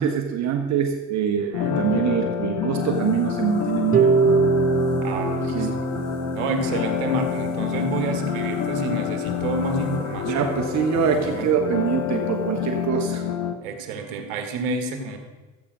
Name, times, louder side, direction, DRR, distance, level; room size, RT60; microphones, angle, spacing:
voice 1, 0.0-4.4 5.5-5.7 10.2-13.2, right 8 dB, 55° right, 3 dB, 1.6 m, -24 dB
voice 2, 1.3-1.8 5.0-5.9 6.3-10.5 11.2-11.5 13.6-15.2, right 2 dB, 85° right, 5 dB, 2.0 m, -29 dB
sound 1, 1.5-13.5, left 11 dB, 55° left, 1.3 m, -28 dB
sound 2, 2.8-11.5, left 4 dB, 85° left, 2.2 m, -39 dB
Harp, 3.9-10.0, right 5 dB, 25° right, 0.5 m, -25 dB
13.5 x 8.7 x 6.3 m, 1.2 s
supercardioid pair, 85°, 33 cm